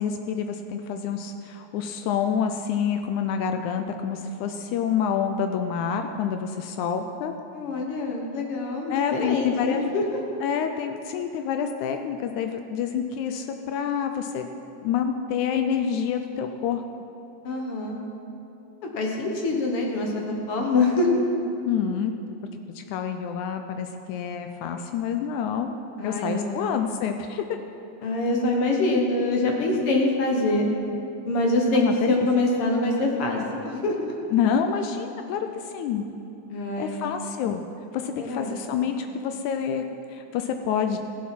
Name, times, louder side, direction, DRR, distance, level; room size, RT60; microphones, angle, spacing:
voice 1, 0.0-7.3 8.9-9.8 10.4-14.5 14.8-16.8 21.7-22.4 22.8-25.8 26.0-27.5 31.7-32.3 34.3-36.1 36.8-37.6 37.9-39.8 40.1-41.0, left 7 dB, 80° left, 6 dB, 1.9 m, -27 dB
voice 2, 7.5-10.2 17.4-18.0 18.9-21.1 26.0-26.7 28.0-30.7 31.2-34.1 36.5-37.0 38.2-38.6, left 2 dB, 55° left, 0 dB, 1.7 m, -25 dB
15.5 x 7.4 x 5.8 m, 2.8 s
omnidirectional pair, 3.7 m